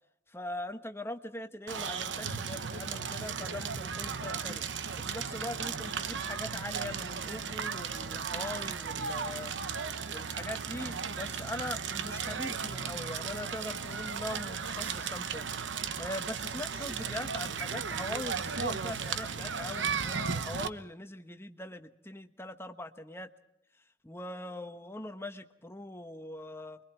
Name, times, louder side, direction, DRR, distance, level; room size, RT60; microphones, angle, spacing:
voice 1, 0.3-4.6 5.0-9.5 10.1-23.3 24.0-26.8, left 1 dB, 15° left, 7 dB, 1.3 m, -41 dB
Crackle, 1.7-20.7, right 6 dB, 70° right, 0.9 m, -35 dB
29.5 x 23.5 x 4.5 m, 0.81 s
head